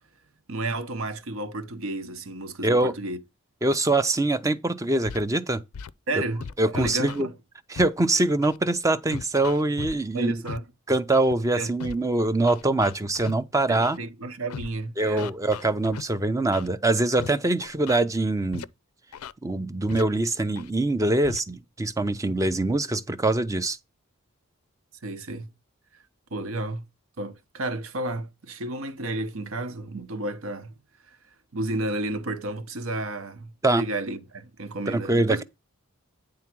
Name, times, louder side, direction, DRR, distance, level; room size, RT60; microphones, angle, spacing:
voice 1, 0.5-3.2 6.1-7.3 10.1-10.7 11.6-11.8 13.7-15.3 25.0-25.5 26.3-26.9 27.2-30.7 31.5-35.4, right 2 dB, 70° right, 0.9 m, -32 dB
voice 2, 2.6-2.9 3.6-5.6 6.6-7.3 7.7-10.3 10.9-14.0 15.0-18.6 19.4-23.8 33.6-33.8 34.9-35.4, right 2 dB, 15° right, 0.4 m, -24 dB
Scratching (performance technique), 5.1-5.2 5.7-5.9 6.4-7.2 7.8-7.9 8.4-8.6 9.1-10.0 10.5-10.6 11.1-11.3 11.8-12.0 12.5-13.3 13.8-14.0 14.5-14.7 15.2-16.0 16.5-16.7 17.2-17.3 17.6-18.0 18.5-18.7 19.1-19.3 19.9-20.0 20.6-20.7 21.2-21.4, left 6 dB, 90° left, 0.4 m, -37 dB
9.6 x 3.7 x 6.0 m
head